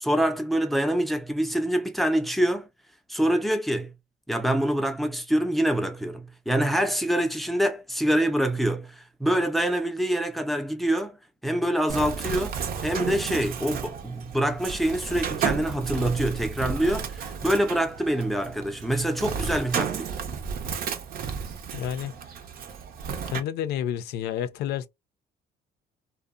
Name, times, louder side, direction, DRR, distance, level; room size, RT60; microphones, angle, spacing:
voice 1, 0.0-2.7 3.1-3.9 4.3-11.2 11.4-20.1, right 1 dB, ahead, 0.5 m, -25 dB
Bird, 11.9-23.4, right 7 dB, 60° right, 0.6 m, -33 dB
voice 2, 21.7-22.1 23.3-24.9, left 10 dB, 75° left, 0.4 m, -29 dB
2.6 x 2.0 x 2.4 m
cardioid pair, 110°, 17 cm